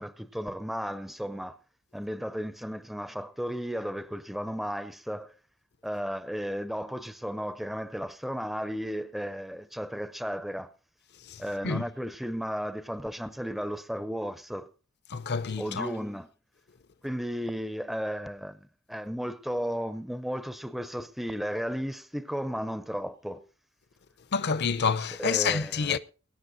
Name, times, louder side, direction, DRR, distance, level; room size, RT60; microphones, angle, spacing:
voice 1, 0.0-1.6 1.9-5.3 5.8-10.7 11.4-14.7 15.6-16.3 17.0-23.4 25.2-26.0, equal, ahead, 0.6 m, -34 dB
voice 2, 11.3-11.9 15.1-15.9 24.3-26.0, left 5 dB, 55° left, 0.7 m, -28 dB
23.0 x 10.5 x 2.6 m
head